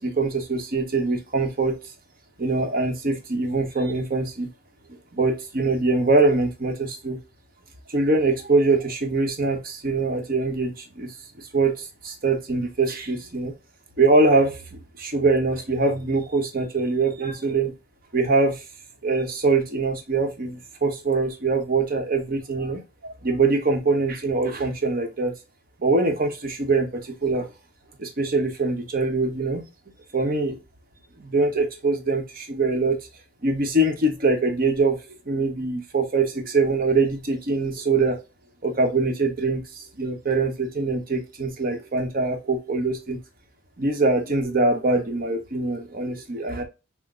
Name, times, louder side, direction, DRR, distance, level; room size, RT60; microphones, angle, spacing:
voice 1, 0.0-1.8 2.4-4.5 4.9-7.2 7.9-13.5 14.0-17.7 18.1-18.6 19.0-25.3 25.8-27.5 28.0-29.7 30.1-30.6 31.2-33.0 33.4-38.2 38.6-43.2 43.8-46.6, right 3 dB, 45° right, 0.9 m, -23 dB
5.9 x 2.1 x 3.8 m
head